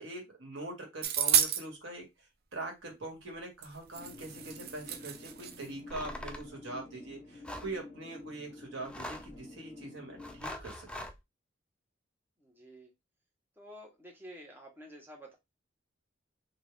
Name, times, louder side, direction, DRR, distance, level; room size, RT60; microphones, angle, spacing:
voice 1, 0.0-2.0 2.5-11.0, right 2 dB, 85° right, 1 dB, 1.6 m, -43 dB
sound 1, 1.0-1.6 3.6-3.7 3.9-5.7, right 9 dB, 55° right, 0.5 m, -30 dB
sound 2, 3.9-10.4, left 2 dB, 40° left, 0.8 m, -50 dB
sound 3, 5.9-6.5 7.4-7.7 8.8-9.4 10.2-11.2, left 1 dB, 5° left, 0.4 m, -42 dB
voice 2, 12.4-12.9 13.6-15.3, equal, 10° right, 0 dB, 1.1 m, -50 dB
3.6 x 2.5 x 3.2 m, 0.21 s
head